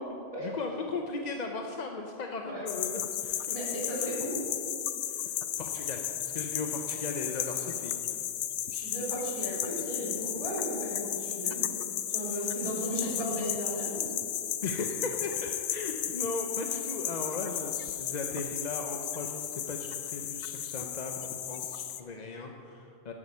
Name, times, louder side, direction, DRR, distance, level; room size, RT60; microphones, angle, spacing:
voice 1, 0.4-3.5 5.1-5.3 5.6-8.0 14.6-23.1, left 3 dB, 45° left, 3 dB, 0.6 m, -37 dB
sound 1, 2.7-22.0, left 10 dB, 65° left, 0.9 m, -34 dB
voice 2, 3.5-4.4 8.7-11.7 12.1-14.3, equal, 25° left, -7 dB, 3.4 m, -35 dB
12.5 x 8.4 x 5.5 m, 2.8 s
omnidirectional pair, 1.3 m